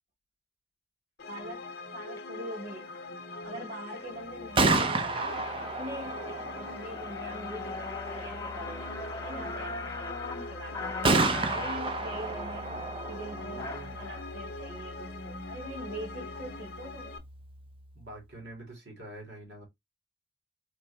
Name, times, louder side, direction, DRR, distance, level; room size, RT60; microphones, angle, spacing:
sound 1, 1.2-17.2, left 3 dB, 60° left, 0.7 m, -43 dB
voice 1, 1.3-1.6 1.9-2.9 3.3-6.3 6.6-10.2 10.5-12.7 13.1-17.2, right 1 dB, 50° right, 2.1 m, -43 dB
sound 2, 2.0-2.2 2.8-3.1 3.6-4.0 4.5-4.6 4.8-14.2, left 3 dB, 20° left, 0.5 m, -41 dB
Gunshot gunfire, 4.3-18.1, right 3 dB, 30° right, 0.5 m, -33 dB
voice 2, 13.4-14.0 17.9-19.6, right 1 dB, 65° right, 2.2 m, -46 dB
4.5 x 3.2 x 2.7 m
head